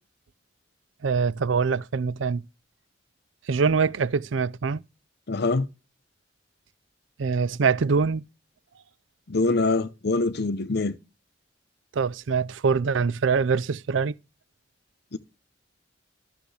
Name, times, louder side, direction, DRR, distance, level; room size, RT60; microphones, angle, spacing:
voice 1, 1.0-2.4 3.5-4.8 7.2-8.2 12.0-14.1, right 5 dB, 80° right, 0.5 m, -24 dB
voice 2, 5.3-5.7 9.3-11.0 15.1-15.2, left 3 dB, 60° left, 0.8 m, -24 dB
13.0 x 6.6 x 3.3 m
head